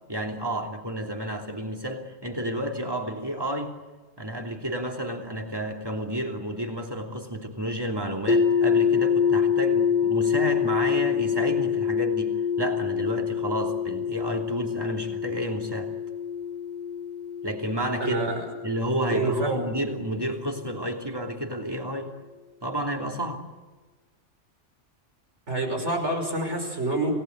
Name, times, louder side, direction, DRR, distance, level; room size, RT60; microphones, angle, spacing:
voice 1, 0.1-3.7 4.2-15.9 17.4-18.2 18.6-22.1 22.6-23.4, right 1 dB, 20° right, 3 dB, 3.2 m, -31 dB
sound 1, 8.3-20.2, left 7 dB, 45° left, 1.6 m, -26 dB
voice 2, 18.0-18.4 19.1-19.6 25.5-27.1, right 2 dB, 70° right, 4 dB, 6.1 m, -27 dB
28.0 x 19.0 x 8.1 m, 1.3 s
omnidirectional pair, 1.2 m